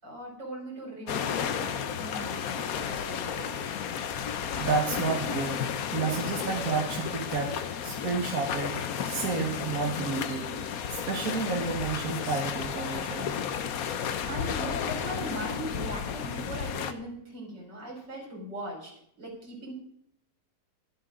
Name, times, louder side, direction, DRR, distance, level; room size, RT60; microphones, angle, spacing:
voice 1, 0.0-3.6 14.3-18.9 19.2-19.7, right 1 dB, 75° right, -1 dB, 5.6 m, -39 dB
sound 1, 1.1-16.9, left 7 dB, 60° left, 1.2 m, -33 dB
voice 2, 4.6-5.6 5.9-7.5 7.8-10.5 10.9-13.3, right 4 dB, 55° right, 1 dB, 1.9 m, -31 dB
23.5 x 8.4 x 3.8 m, 0.71 s
omnidirectional pair, 1.9 m